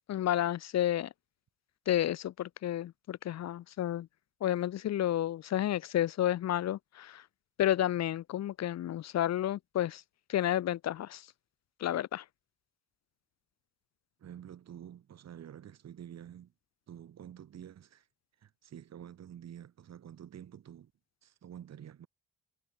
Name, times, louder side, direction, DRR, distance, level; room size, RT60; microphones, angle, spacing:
voice 1, 0.1-1.1 1.9-4.1 4.4-7.2 7.6-10.0 10.3-11.2 11.8-12.2, left 12 dB, 60° left, 0.8 m, -31 dB
voice 2, 14.2-16.5 16.9-18.1 18.4-20.9 21.2-22.1, right 10 dB, 60° right, 2.6 m, -49 dB
cardioid pair, 90°, 30 cm